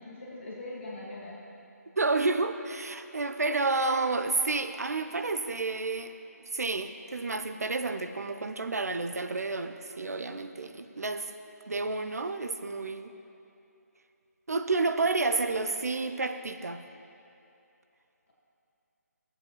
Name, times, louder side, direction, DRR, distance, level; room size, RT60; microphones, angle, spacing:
voice 1, 0.0-1.4, left 2 dB, 40° left, -5 dB, 1.8 m, -41 dB
voice 2, 2.0-6.1 6.4-11.3 11.7-13.1 14.5-16.8, right 3 dB, 65° right, 8 dB, 0.6 m, -30 dB
16.0 x 8.0 x 3.0 m, 2.8 s
figure-of-eight pair, 150°, 9 cm